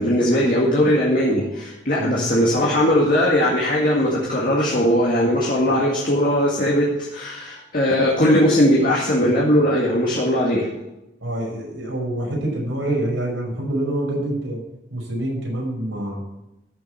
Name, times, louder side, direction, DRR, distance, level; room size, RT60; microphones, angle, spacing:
voice 1, 0.0-10.7, equal, 45° left, -4 dB, 2.1 m, -19 dB
voice 2, 2.0-2.8 11.2-14.6 14.9-16.2, right 1 dB, 90° right, -2 dB, 5.8 m, -26 dB
13.5 x 7.5 x 6.4 m, 0.92 s
head